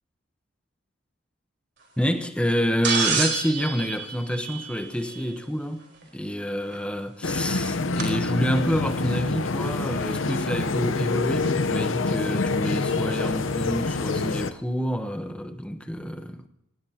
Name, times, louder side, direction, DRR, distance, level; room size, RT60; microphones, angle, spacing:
voice 1, 2.0-5.9 6.1-16.5, equal, 5° left, 0.9 m, -28 dB
sound 1, 2.8-5.2 6.7-6.8 8.0-8.1, right 5 dB, 60° right, 4.2 m, -27 dB
sound 2, 7.2-14.5, left 3 dB, 80° left, 0.8 m, -26 dB
23.5 x 18.0 x 2.8 m
head